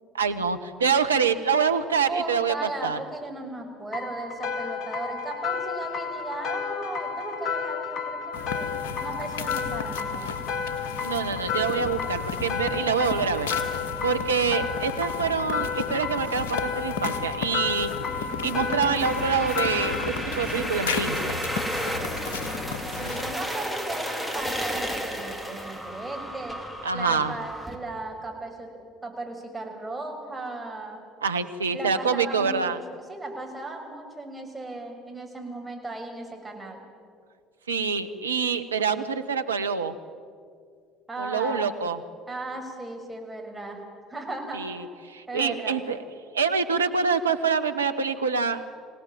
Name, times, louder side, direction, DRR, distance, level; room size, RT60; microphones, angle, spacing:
voice 1, 0.1-3.0 11.0-13.5 14.0-17.9 18.4-21.4 26.8-27.3 31.2-32.8 37.7-39.9 41.2-42.0 44.5-46.0 46.3-48.6, right 5 dB, 85° right, 8 dB, 1.0 m, -26 dB
voice 2, 2.0-8.7 9.0-10.4 22.8-26.6 26.9-31.0 31.7-36.8 41.1-41.7 42.3-43.8 44.1-44.7 45.3-45.8, right 2 dB, 15° right, 2 dB, 6.2 m, -36 dB
sound 1, 3.9-20.1, left 6 dB, 50° left, 2.6 m, -32 dB
sound 2, 8.3-23.3, left 5 dB, 75° left, 1.6 m, -35 dB
sound 3, 18.0-27.7, equal, 5° left, 3.9 m, -33 dB
26.0 x 18.0 x 9.1 m, 2.2 s
figure-of-eight pair, 60°, 0 cm